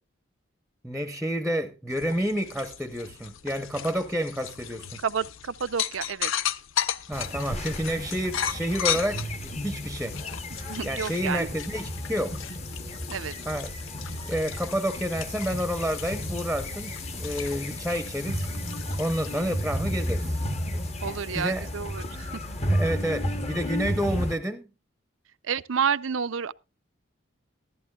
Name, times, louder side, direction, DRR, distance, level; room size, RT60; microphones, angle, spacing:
voice 1, 0.8-5.0 7.1-10.2 10.8-12.4 13.5-13.7 14.2-18.5 18.9-20.4 21.3-21.7 22.7-24.7, equal, ahead, 0.7 m, -29 dB
sound 1, 1.9-20.3, left 9 dB, 80° left, 0.6 m, -36 dB
voice 2, 5.0-6.3 10.5-11.5 13.1-13.3 21.0-22.4 25.4-26.5, right 6 dB, 80° right, 0.6 m, -30 dB
sound 2, 7.1-24.3, equal, 30° left, 1.0 m, -33 dB
15.5 x 13.5 x 2.3 m
head